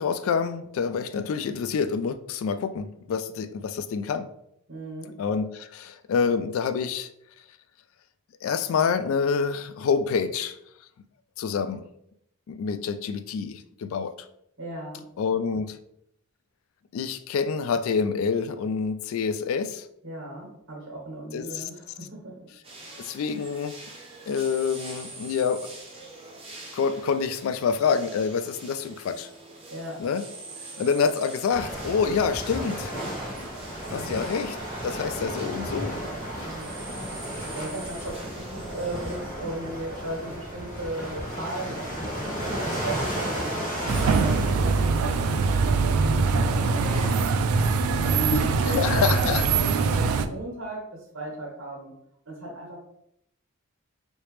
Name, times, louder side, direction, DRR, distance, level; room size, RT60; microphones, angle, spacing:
voice 1, 0.0-4.3 5.2-7.1 8.4-10.6 11.4-11.9 12.5-14.1 15.2-15.8 16.9-19.9 21.3-21.6 23.0-23.8 24.3-25.7 26.7-29.3 30.0-30.3 30.8-32.9 33.9-34.6 34.8-36.0 48.3-49.4, left 6 dB, 75° left, 11 dB, 0.3 m, -27 dB
voice 2, 4.7-5.2 14.6-15.0 20.0-22.5 29.7-30.0 33.9-34.2 36.4-36.7 37.5-47.3 48.0-52.0 52.2-52.8, right 1 dB, 70° right, -2 dB, 1.4 m, -37 dB
sound 1, 22.6-39.2, right 2 dB, 25° right, 0.6 m, -44 dB
sound 2, 31.5-47.1, equal, 35° left, 1.2 m, -34 dB
sound 3, 43.9-50.3, right 4 dB, 90° right, 0.3 m, -23 dB
3.1 x 2.9 x 3.1 m, 0.74 s
head